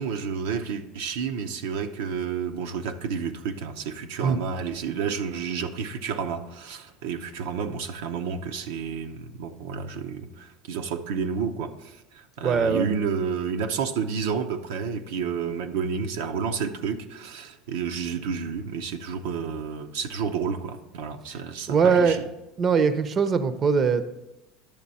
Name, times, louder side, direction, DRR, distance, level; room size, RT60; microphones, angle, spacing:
voice 1, 0.0-22.2, right 6 dB, 85° right, 5 dB, 0.7 m, -30 dB
voice 2, 12.4-12.9 21.7-22.2 22.6-24.0, right 5 dB, 35° right, 12 dB, 0.6 m, -21 dB
10.5 x 6.7 x 4.2 m, 0.95 s
supercardioid pair, 110°, 0 cm